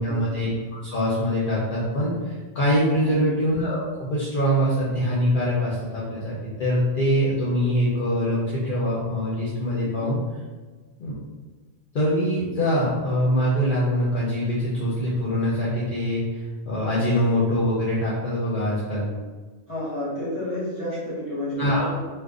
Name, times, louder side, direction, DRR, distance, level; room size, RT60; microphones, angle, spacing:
voice 1, 0.0-6.3 6.6-10.2 11.0-11.1 11.9-19.1 21.6-21.9, equal, 55° left, -7 dB, 0.8 m, -24 dB
voice 2, 19.7-22.0, left 1 dB, 30° left, -10 dB, 1.2 m, -31 dB
2.5 x 2.5 x 3.6 m, 1.3 s
omnidirectional pair, 1.1 m